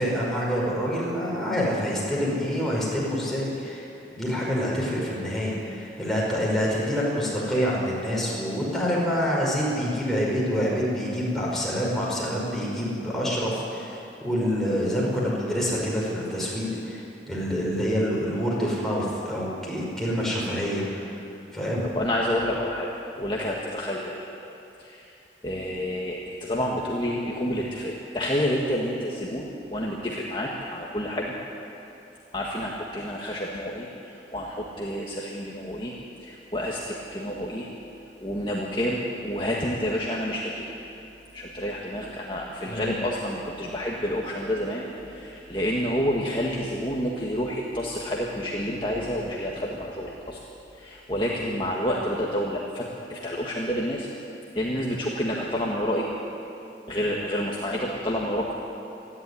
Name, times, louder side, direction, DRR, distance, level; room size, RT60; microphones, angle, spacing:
voice 1, 0.0-3.9 4.1-21.2 21.5-21.8 42.7-43.0, equal, ahead, -5 dB, 5.5 m, -27 dB
voice 2, 21.9-22.9 23.2-24.3 24.8-25.1 25.4-31.3 32.3-35.9 36.2-37.7 38.2-40.6 41.3-50.4 50.8-54.1 54.6-56.1 56.9-58.5, equal, 25° left, -3 dB, 1.8 m, -29 dB
27.0 x 11.5 x 10.0 m, 2.8 s
head